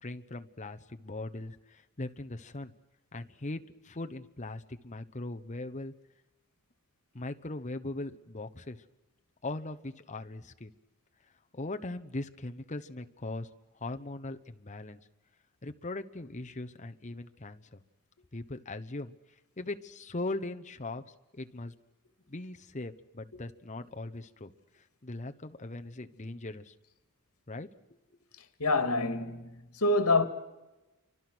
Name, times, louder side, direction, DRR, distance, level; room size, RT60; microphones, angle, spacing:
voice 1, 0.0-2.7 3.1-5.9 7.1-8.8 9.4-10.7 11.5-13.5 13.8-15.0 15.6-17.8 18.3-19.2 19.6-21.0 21.3-21.7 22.3-24.5 24.8-26.7 27.5-27.7, left 2 dB, 35° left, 1.0 m, -40 dB
voice 2, 28.6-30.3, left 2 dB, 80° left, 2.1 m, -26 dB
29.0 x 24.5 x 6.2 m
head